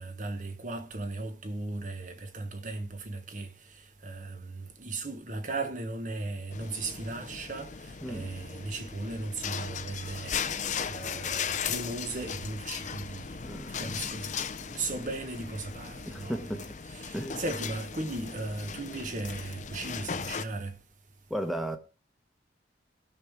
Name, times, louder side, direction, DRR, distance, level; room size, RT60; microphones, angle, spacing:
voice 1, 0.0-3.5 4.0-14.3 14.7-20.7, right 2 dB, 40° right, 1.2 m, -37 dB
sound 1, 6.5-20.4, left 6 dB, 40° left, 0.6 m, -37 dB
voice 2, 13.4-13.8 16.1-16.6 17.1-17.4 21.3-21.8, right 1 dB, ahead, 1.1 m, -34 dB
16.5 x 6.5 x 3.5 m
head